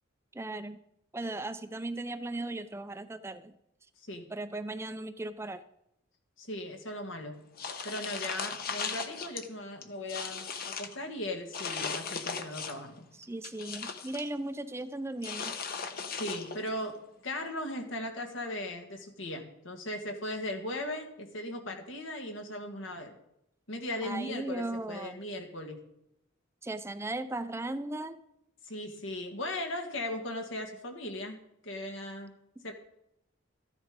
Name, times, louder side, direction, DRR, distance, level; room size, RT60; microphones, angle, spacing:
voice 1, 0.3-0.8 1.1-3.5 4.3-5.6 13.2-15.5 24.0-25.2 26.6-28.2, right 2 dB, 15° right, 11 dB, 0.5 m, -37 dB
voice 2, 6.4-7.4 7.8-13.1 16.1-23.2 23.7-25.8 28.6-31.4 31.6-32.3 32.6-32.7, left 1 dB, 80° left, 4 dB, 2.1 m, -38 dB
sound 1, 7.6-9.4 9.8-11.0 11.5-12.9 13.2-14.3 15.2-16.7, left 5 dB, 45° left, 1.1 m, -37 dB
14.0 x 10.5 x 5.2 m, 0.81 s
head